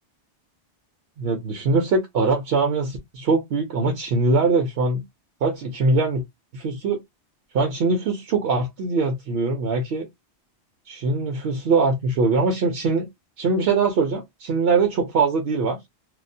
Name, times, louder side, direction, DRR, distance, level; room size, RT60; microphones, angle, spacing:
voice 1, 1.2-5.0 5.4-6.2 6.5-7.0 7.5-10.1 10.9-13.1 13.4-15.8, right 3 dB, 65° right, 0.8 m, -22 dB
2.3 x 2.0 x 2.6 m
omnidirectional pair, 1.2 m